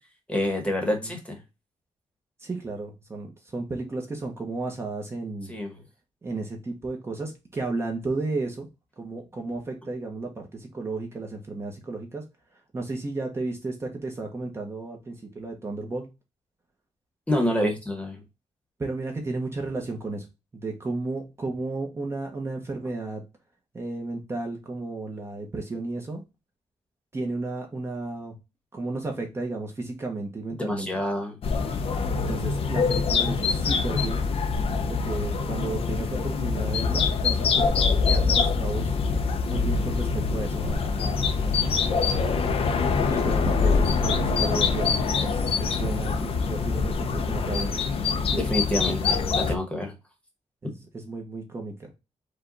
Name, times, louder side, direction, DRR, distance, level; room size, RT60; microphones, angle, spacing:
voice 1, 0.3-1.4 5.5-5.8 17.3-18.2 30.6-31.4 48.3-49.9, left 1 dB, 10° left, 2 dB, 1.1 m, -27 dB
voice 2, 2.4-5.5 6.2-8.7 9.0-12.2 12.7-16.1 17.4-17.7 18.8-20.2 20.5-23.2 23.7-26.2 27.1-28.3 28.7-30.9 32.3-34.2 34.9-37.7 38.1-38.9 39.5-42.4 43.1-47.8 48.1-48.5 50.6-50.7 51.0-51.9, right 3 dB, 20° right, 1 dB, 0.8 m, -33 dB
sound 1, 31.4-49.5, left 5 dB, 55° left, 0.5 m, -24 dB
5.0 x 2.3 x 3.8 m, 0.26 s
wide cardioid pair, 180°, 12 cm